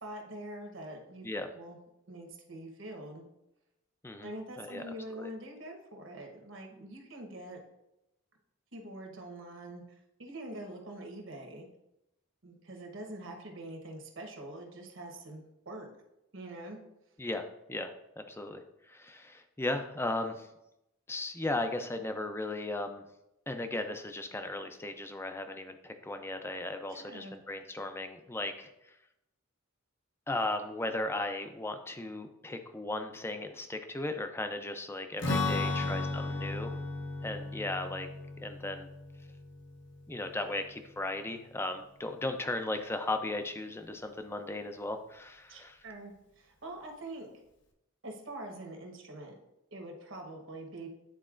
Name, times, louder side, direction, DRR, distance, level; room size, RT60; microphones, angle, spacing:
voice 1, 0.0-1.2 1.5-1.8 2.1-3.2 4.2-7.6 8.7-11.7 12.4-15.9 16.3-16.8 26.9-27.4 35.4-36.0 45.5-47.4 48.0-49.4 49.7-50.9, right 1 dB, 65° right, 2 dB, 1.2 m, -44 dB
voice 2, 17.2-17.9 18.3-20.5 21.1-23.0 23.5-28.7 30.3-36.8 37.2-38.1 38.4-38.9 40.1-45.8, left 2 dB, 10° left, 7 dB, 0.4 m, -36 dB
Strum, 35.2-40.8, left 2 dB, 55° left, 0.8 m, -35 dB
9.9 x 4.1 x 2.5 m, 0.87 s
head